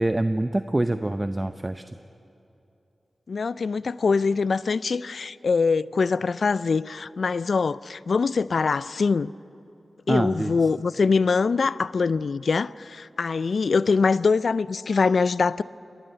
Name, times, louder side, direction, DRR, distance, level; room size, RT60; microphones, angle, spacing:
voice 1, 0.0-1.8 10.1-10.5, right 1 dB, 25° right, 10 dB, 0.7 m, -25 dB
voice 2, 3.3-9.3 10.1-15.6, left 4 dB, 75° left, 19 dB, 0.4 m, -23 dB
21.5 x 13.0 x 9.1 m, 2.8 s
cardioid pair, 45°, 0 cm